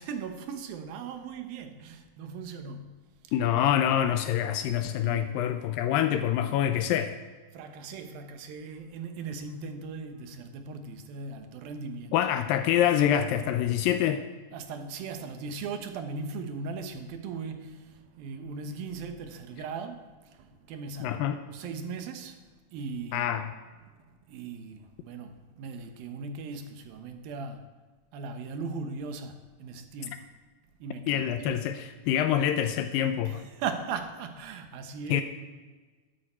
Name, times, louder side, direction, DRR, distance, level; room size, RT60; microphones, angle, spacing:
voice 1, 0.0-3.0 5.0-5.4 7.5-12.2 14.5-22.4 22.7-23.4 24.3-27.7 28.1-30.3 30.8-31.6 33.3-35.2, right 4 dB, 70° right, 6 dB, 2.7 m, -38 dB
voice 2, 3.3-7.2 12.1-14.2 21.0-21.4 23.1-23.5 31.1-33.4 35.1-35.2, left 10 dB, 85° left, 9 dB, 2.1 m, -26 dB
12.5 x 12.0 x 4.4 m, 1.3 s
omnidirectional pair, 4.6 m